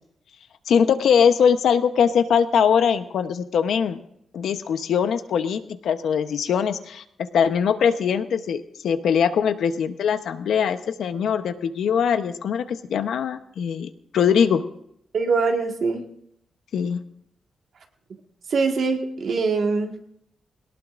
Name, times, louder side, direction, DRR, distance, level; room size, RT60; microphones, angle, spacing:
voice 1, 0.7-4.0 4.3-7.0 7.3-14.6 16.7-17.0, left 7 dB, 90° left, 9 dB, 0.9 m, -21 dB
voice 2, 15.1-16.0 18.5-19.9, right 4 dB, 55° right, 2 dB, 1.8 m, -23 dB
21.5 x 18.0 x 2.6 m, 0.74 s
wide cardioid pair, 165°, 0 cm